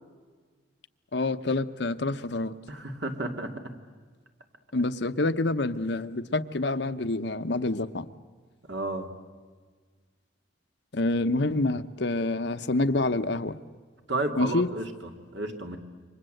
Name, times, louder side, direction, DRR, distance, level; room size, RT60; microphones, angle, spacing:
voice 1, 1.1-2.6 4.7-8.1 10.9-13.6 14.4-14.7, left 2 dB, 65° left, 10 dB, 0.9 m, -27 dB
voice 2, 2.7-3.8 8.6-9.1 14.1-15.8, right 2 dB, 70° right, 5 dB, 2.5 m, -32 dB
28.5 x 25.0 x 7.9 m, 1.5 s
head